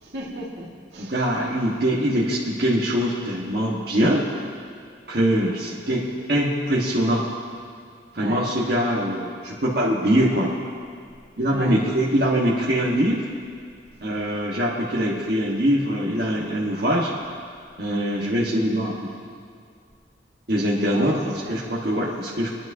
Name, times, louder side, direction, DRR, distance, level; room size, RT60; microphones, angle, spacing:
voice 1, 0.0-1.1 8.2-8.5 11.5-11.8 20.9-21.9, right 1 dB, 75° right, -2 dB, 1.9 m, -35 dB
voice 2, 1.0-4.2 5.1-7.2 8.1-10.5 11.4-13.2 14.0-17.1 17.8-19.3 20.5-21.2 21.5-22.5, equal, 60° right, -6 dB, 1.4 m, -23 dB
26.0 x 10.5 x 2.8 m, 2.2 s
head